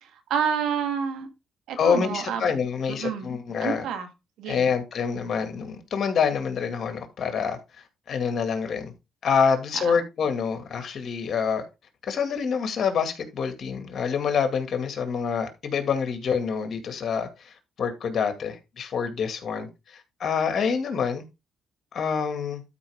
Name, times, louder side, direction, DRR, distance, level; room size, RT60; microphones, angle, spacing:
voice 1, 0.0-1.3 1.7-2.5 2.9-3.3 3.6-4.1 4.4-4.7 9.7-10.0, right 7 dB, 85° right, 2.0 m, -29 dB
voice 2, 1.8-3.8 4.5-8.9 9.2-11.6 12.0-21.2 21.9-22.6, left 6 dB, 55° left, 2.2 m, -27 dB
12.5 x 5.2 x 3.6 m
cardioid pair, 90°, 0 cm